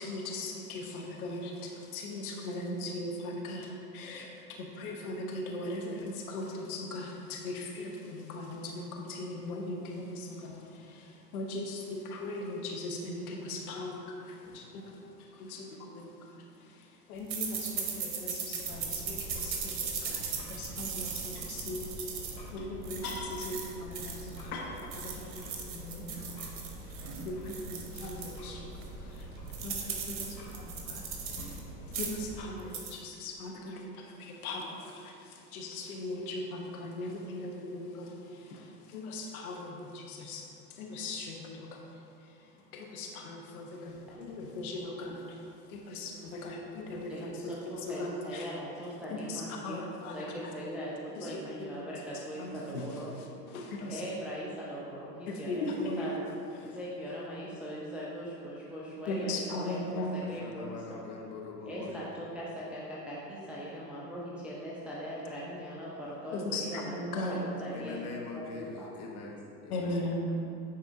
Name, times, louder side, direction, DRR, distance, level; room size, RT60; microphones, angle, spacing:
voice 1, 0.0-22.2 22.5-47.4 47.8-48.5 49.1-50.5 51.1-51.8 52.1-54.0 55.3-56.1 56.6-56.8 59.1-60.1 66.3-67.5 69.7-70.3, left 2 dB, 60° left, 0 dB, 1.0 m, -39 dB
sound 1, 17.3-24.5 24.8-28.4 28.8-28.9 29.2-31.6 31.9-32.3 32.6-32.9, right 6 dB, 60° right, 1.1 m, -38 dB
sound 2, 18.6-32.4, equal, 90° left, 1.5 m, -46 dB
voice 2, 47.1-49.8 50.1-53.1 53.9-55.7 56.0-56.3 56.5-61.0 61.7-66.9 67.2-68.9, equal, 5° right, -7 dB, 0.4 m, -40 dB
voice 3, 60.4-62.1 67.7-70.0, left 3 dB, 30° left, -1 dB, 1.1 m, -42 dB
9.5 x 4.2 x 2.6 m, 2.5 s
figure-of-eight pair, 90°, 50 cm